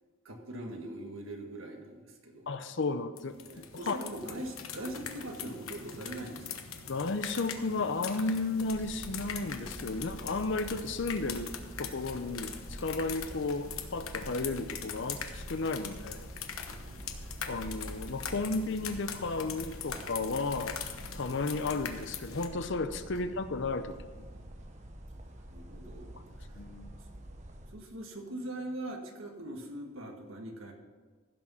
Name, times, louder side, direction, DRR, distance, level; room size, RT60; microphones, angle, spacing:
voice 1, 0.2-2.5 3.5-6.6 16.6-17.1 24.3-24.4 25.2-26.2 27.7-30.7, right 1 dB, 75° right, 3 dB, 1.7 m, -42 dB
voice 2, 2.5-4.0 6.9-11.5 11.8-16.3 17.5-20.8 21.1-24.3 26.6-26.9, left 3 dB, 60° left, 11 dB, 0.7 m, -33 dB
sound 1, 3.2-22.5, left 7 dB, 85° left, 1.0 m, -42 dB
sound 2, 8.6-27.8, right 1 dB, 35° right, 1.0 m, -47 dB
15.0 x 6.2 x 5.7 m, 1.4 s
head